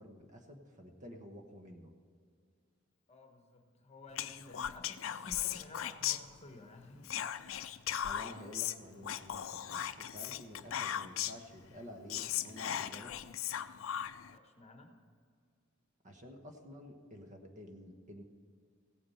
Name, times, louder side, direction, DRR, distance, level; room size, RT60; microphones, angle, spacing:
voice 1, 0.0-1.9 8.0-13.1 16.0-18.2, equal, 35° right, 4 dB, 1.2 m, -51 dB
voice 2, 3.1-7.3 14.3-14.9, left 2 dB, 30° left, 4 dB, 1.1 m, -53 dB
Whispering, 4.1-6.7 7.0-11.5 11.8-11.9 12.1-14.3, left 10 dB, 70° left, 0.5 m, -38 dB
16.0 x 8.7 x 5.7 m, 2.1 s
head